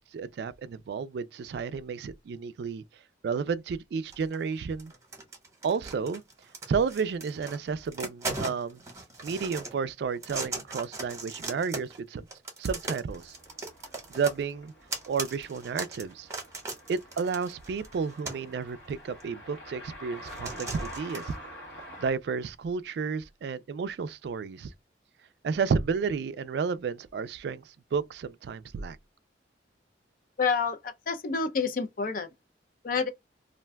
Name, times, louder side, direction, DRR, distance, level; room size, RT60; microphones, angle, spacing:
voice 1, 0.0-2.8 3.2-4.9 5.6-6.2 6.7-8.8 9.2-12.3 12.6-13.4 14.1-14.7 15.1-16.3 16.9-21.3 22.0-24.7 25.4-27.6 27.9-29.0, right 5 dB, 65° right, 0.3 m, -31 dB
sound 1, 4.1-4.5 4.8-7.6 7.8-9.7 10.2-12.0 12.3-18.5 19.2-19.3 20.3-21.3, right 3 dB, 15° right, 1.0 m, -38 dB
sound 2, 13.1-22.1, equal, 75° left, 1.2 m, -47 dB
voice 2, 30.4-32.3 32.8-33.1, left 5 dB, 50° left, 0.4 m, -28 dB
2.5 x 2.2 x 3.3 m
head